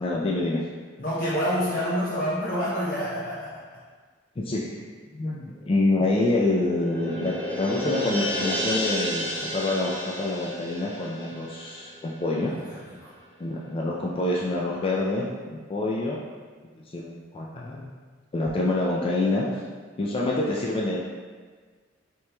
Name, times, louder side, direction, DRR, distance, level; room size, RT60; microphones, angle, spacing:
voice 1, 0.0-0.6 4.4-4.8 5.1-12.5 13.4-16.2 16.8-17.9 18.3-19.5 20.0-21.0, left 2 dB, 30° left, -3 dB, 0.3 m, -27 dB
voice 2, 1.0-3.5 12.4-12.5 12.8-13.1, equal, 50° left, -9 dB, 0.7 m, -27 dB
sound 1, 5.5-12.5 12.9-13.0, equal, 10° left, 1.3 m, -32 dB
5.8 x 3.0 x 2.2 m, 1.5 s
head